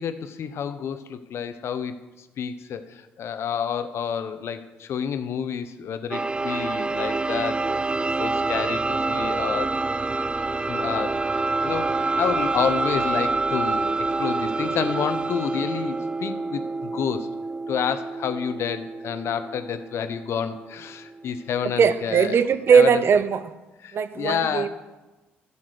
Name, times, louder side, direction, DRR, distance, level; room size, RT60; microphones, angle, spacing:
voice 1, 0.0-7.7 8.0-9.8 10.7-13.9 14.2-17.3 17.7-22.4 22.7-23.0 23.8-24.7, left 7 dB, 65° left, 1.0 m, -29 dB
sound 1, 6.1-21.7, right 3 dB, 20° right, 0.4 m, -27 dB
voice 2, 21.8-23.5 23.9-24.7, right 6 dB, 55° right, 0.7 m, -19 dB
10.5 x 7.2 x 6.6 m
hypercardioid pair, 55°, 5 cm